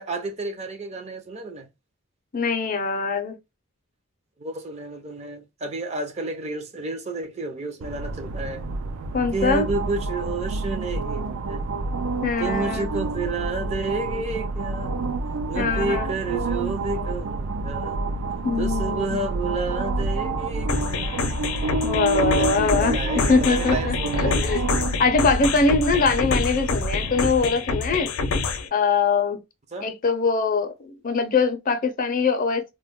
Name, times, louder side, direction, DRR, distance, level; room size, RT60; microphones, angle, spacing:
voice 1, 0.0-1.7 4.4-8.6 9.3-11.8 12.4-14.9 15.5-18.0 18.6-21.2 22.1-24.9 29.7-29.9, right 3 dB, 30° right, 0.5 m, -31 dB
voice 2, 2.3-3.3 9.1-9.7 12.2-12.9 15.5-16.1 18.4-19.2 21.8-24.0 24.2-24.6 25.0-28.1 28.7-29.4 29.8-32.6, left 4 dB, 40° left, 0.5 m, -22 dB
sound 1, 7.8-27.3, right 2 dB, 85° right, 0.4 m, -28 dB
sound 2, 20.7-28.7, left 4 dB, 85° left, 0.5 m, -27 dB
2.2 x 2.1 x 3.5 m
head